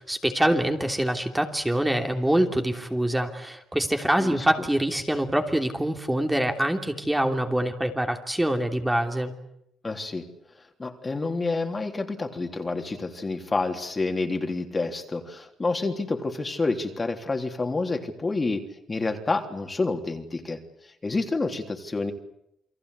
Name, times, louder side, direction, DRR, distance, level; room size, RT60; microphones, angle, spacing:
voice 1, 0.0-9.3, right 1 dB, 10° right, 4 dB, 3.0 m, -25 dB
voice 2, 9.8-10.2 10.8-18.6 18.9-20.6 21.0-22.1, left 3 dB, 25° left, 5 dB, 3.4 m, -28 dB
29.0 x 23.0 x 8.3 m, 0.79 s
cardioid pair, 90°, 0 cm